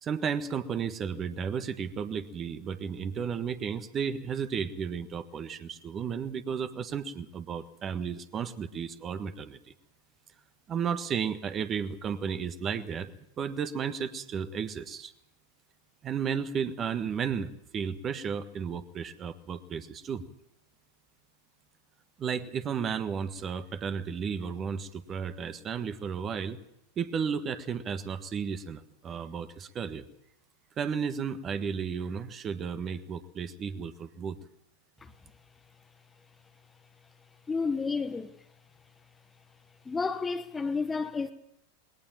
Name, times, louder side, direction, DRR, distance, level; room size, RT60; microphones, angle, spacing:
voice 1, 0.0-9.6 10.7-15.1 16.0-20.2 22.2-26.6 27.0-30.1 30.8-34.4, right 7 dB, 25° right, 1.5 m, -33 dB
voice 2, 37.5-38.3 39.8-41.3, left 4 dB, 15° left, 1.2 m, -31 dB
21.5 x 18.5 x 7.5 m
figure-of-eight pair, 90°, 0 cm